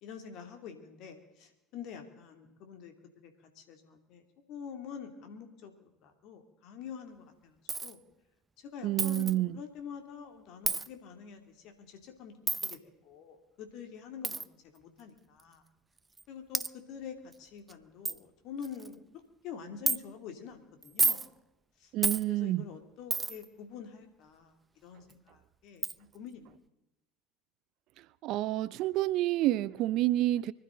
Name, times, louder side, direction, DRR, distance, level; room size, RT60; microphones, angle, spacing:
voice 1, 0.0-2.9 3.2-5.7 6.0-8.0 8.6-15.6 16.3-19.0 19.4-21.2 21.8-21.9 22.2-24.5 24.8-26.5, left 7 dB, 60° left, 2.7 m, -46 dB
Coin (dropping), 7.7-7.9 9.0-9.3 10.7-10.9 12.5-12.8 14.2-14.4 15.4-15.5 16.2-16.3 16.5-16.7 17.3-17.4 17.7-17.8 18.1-18.2 18.6-18.9 19.9-20.0 20.8-21.3 22.0-22.2 23.1-23.5 25.1-25.2 25.8-26.0, right 3 dB, 20° right, 0.6 m, -30 dB
voice 2, 8.8-9.6 21.9-22.6 28.2-30.5, right 15 dB, 60° right, 0.6 m, -29 dB
24.5 x 12.5 x 3.9 m
hypercardioid pair, 70°, 0 cm